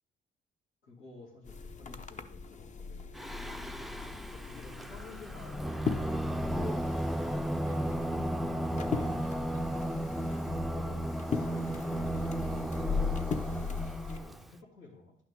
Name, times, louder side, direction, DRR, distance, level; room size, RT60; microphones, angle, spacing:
voice 1, 0.8-3.4 4.1-9.8 10.7-13.8 14.1-15.2, left 3 dB, 85° left, -4 dB, 3.0 m, -52 dB
sound 1, 1.5-14.2, left 5 dB, 35° left, 0.7 m, -38 dB
Singing, 3.1-14.5, right 1 dB, ahead, 0.4 m, -34 dB
11.0 x 5.9 x 3.7 m, 0.64 s
cardioid pair, 90°, 20 cm